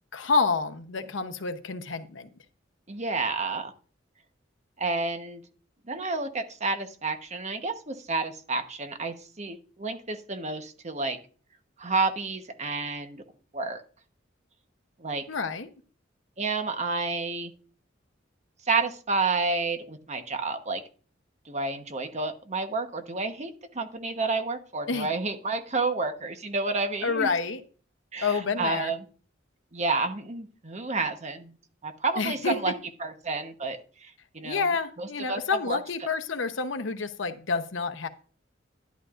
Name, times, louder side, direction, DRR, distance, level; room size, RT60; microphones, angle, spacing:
voice 1, 0.1-2.3 15.3-15.7 24.9-25.1 27.0-27.6 28.2-28.9 32.2-32.7 34.4-38.1, left 4 dB, 70° left, 0.9 m, -28 dB
voice 2, 2.9-3.7 4.8-5.4 5.9-11.2 11.8-13.2 13.5-13.8 15.0-15.2 16.4-17.5 18.7-20.8 21.5-27.3 28.1-29.0 29.7-31.5 31.8-32.7 33.0-34.7 35.0-35.4 35.7-35.8, right 3 dB, 35° right, 1.1 m, -30 dB
11.5 x 11.0 x 2.5 m
head